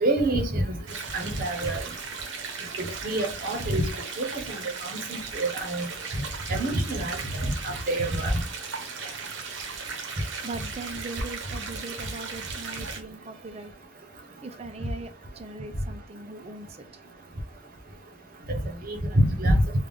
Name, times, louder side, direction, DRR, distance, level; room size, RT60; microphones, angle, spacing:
voice 1, 0.0-0.7 1.1-1.8 2.8-3.8 4.2-4.6 4.8-5.9 6.5-7.2 7.6-8.3 18.5-18.6 18.9-19.6, right 1 dB, 50° right, 0.9 m, -26 dB
sound 1, 0.9-13.0, right 5 dB, 80° right, 0.8 m, -37 dB
voice 2, 10.4-13.7 14.4-16.9 17.3-17.7, right 2 dB, 35° right, 0.5 m, -40 dB
3.5 x 2.3 x 3.8 m
head